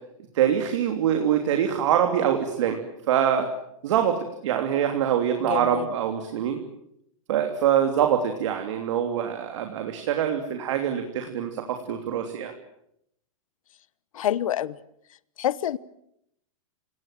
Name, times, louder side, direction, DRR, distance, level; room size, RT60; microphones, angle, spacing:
voice 1, 0.3-3.5 3.8-6.6 7.3-12.5, right 9 dB, 60° right, 5 dB, 3.2 m, -24 dB
voice 2, 5.4-5.9 14.1-14.8 15.4-15.8, left 11 dB, 75° left, 19 dB, 1.1 m, -27 dB
29.0 x 18.5 x 9.2 m, 0.77 s
supercardioid pair, 160°, 17 cm